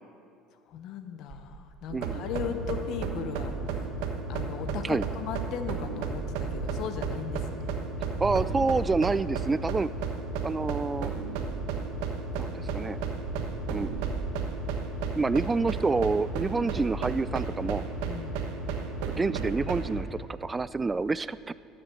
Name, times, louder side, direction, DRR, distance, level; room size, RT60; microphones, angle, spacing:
voice 1, 0.7-3.8 4.3-7.7 18.0-18.4, left 7 dB, 60° left, 8 dB, 0.9 m, -37 dB
sound 1, 1.3-2.7 3.3-3.4 3.6-3.9 4.4-4.7 5.5-7.0 7.7-11.6 12.1-15.1 15.6-15.8 16.1-16.2 16.5-17.2 18.9-19.0 19.3-19.7 20.0-20.9, right 3 dB, 40° right, 2.4 m, -42 dB
sound 2, 1.9-20.0, right 4 dB, 90° right, 1.2 m, -33 dB
voice 2, 8.2-9.9 10.4-11.1 12.4-13.0 13.7-14.0 15.2-17.9 19.1-21.5, right 3 dB, 15° right, 17 dB, 0.3 m, -28 dB
13.0 x 7.9 x 7.8 m, 2.4 s
cardioid pair, 125°, 0 cm